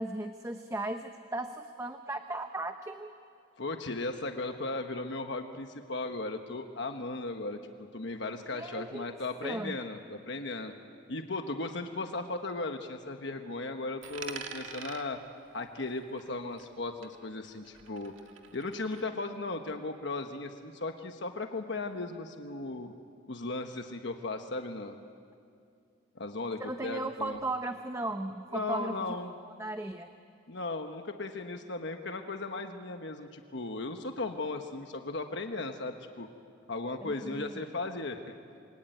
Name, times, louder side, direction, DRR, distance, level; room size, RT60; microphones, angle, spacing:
voice 1, 0.0-3.1 8.5-9.0 9.4-9.8 26.6-29.0 29.6-30.1 37.0-37.6, right 2 dB, 15° right, 6 dB, 0.8 m, -36 dB
voice 2, 3.6-7.6 7.9-10.7 11.1-15.2 15.5-18.1 18.5-22.9 23.3-25.0 26.1-27.4 28.5-29.3 30.5-36.3 36.7-38.3, left 2 dB, 60° left, 5 dB, 1.2 m, -36 dB
Coin (dropping), 14.0-16.8 17.0-19.0, right 5 dB, 75° right, 2.0 m, -46 dB
27.5 x 22.5 x 9.3 m, 2.4 s
head